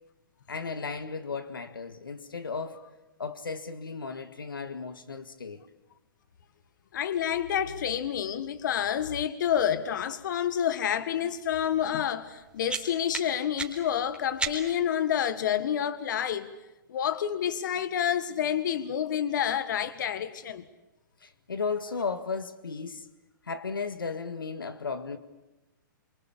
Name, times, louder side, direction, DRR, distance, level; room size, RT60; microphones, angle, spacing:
voice 1, 0.5-2.8 3.2-5.6 21.2-23.1 23.5-25.2, left 5 dB, 90° left, 1.9 m, -35 dB
voice 2, 6.9-16.5 16.9-20.6, left 9 dB, 60° left, 1.8 m, -28 dB
sound 1, 12.2-14.9, right 4 dB, 10° right, 3.8 m, -37 dB
28.0 x 24.5 x 8.6 m
hypercardioid pair, 125°, 11 cm